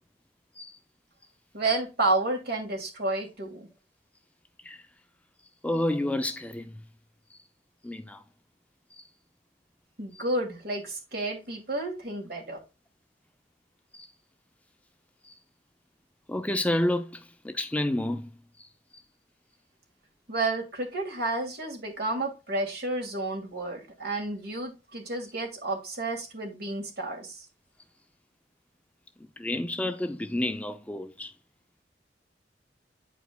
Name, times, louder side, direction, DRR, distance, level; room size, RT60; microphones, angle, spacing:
voice 1, 1.5-3.7 10.0-12.6 20.3-27.4, right 2 dB, 60° right, 2.5 m, -31 dB
voice 2, 5.6-6.7 7.8-8.2 9.0-9.1 13.9-14.1 15.2-15.3 16.3-18.3 18.6-18.7 29.4-31.3, left 1 dB, 10° left, 0.5 m, -30 dB
9.0 x 5.0 x 2.3 m
head